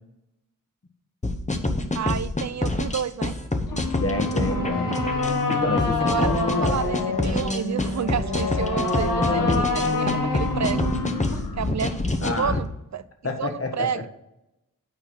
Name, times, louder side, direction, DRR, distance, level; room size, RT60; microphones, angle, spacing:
sound 1, 1.2-12.6, left 2 dB, 20° left, 1.0 m, -27 dB
voice 1, 1.9-3.3 4.5-4.8 6.0-6.3 6.6-10.9 11.6-11.9 12.2-12.7 12.9-14.1, right 8 dB, 55° right, 14 dB, 0.4 m, -30 dB
sound 2, 3.7-11.7, left 3 dB, 80° left, 1.3 m, -26 dB
voice 2, 4.0-4.9 5.5-6.8 9.2-9.6 12.2-12.5 13.2-14.1, left 2 dB, 45° left, 5 dB, 1.5 m, -28 dB
9.1 x 4.2 x 6.0 m, 0.90 s
cardioid pair, 45°, 33 cm